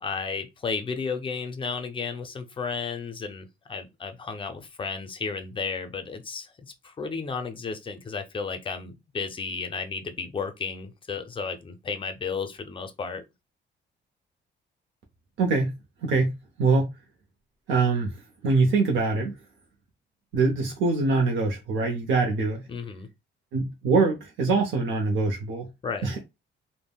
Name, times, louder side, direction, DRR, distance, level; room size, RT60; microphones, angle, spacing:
voice 1, 0.0-13.2 22.7-23.1 25.8-26.1, left 5 dB, 25° left, 0.4 m, -33 dB
voice 2, 15.4-15.7 16.0-16.9 17.7-18.2 18.4-19.3 20.3-22.6 23.5-25.7 26.0-26.2, right 3 dB, 80° right, 0.7 m, -23 dB
3.4 x 2.0 x 2.2 m
cardioid pair, 135°, 20 cm